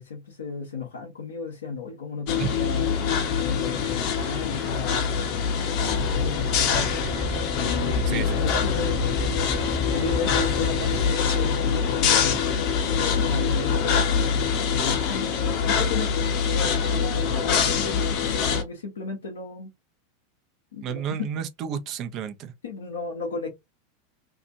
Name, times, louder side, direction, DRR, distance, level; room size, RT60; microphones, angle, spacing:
voice 1, 0.0-2.9 3.4-6.8 7.5-9.2 9.8-14.0 14.7-19.7 20.7-21.1 22.6-23.5, left 4 dB, 80° left, 0.9 m, -35 dB
sound 1, 2.3-18.6, left 6 dB, 50° left, 0.9 m, -24 dB
sound 2, 5.8-11.0, left 1 dB, 5° right, 1.0 m, -32 dB
voice 2, 8.1-8.7 20.8-22.5, right 8 dB, 45° right, 0.7 m, -31 dB
2.8 x 2.5 x 2.6 m
hypercardioid pair, 95°, 0 cm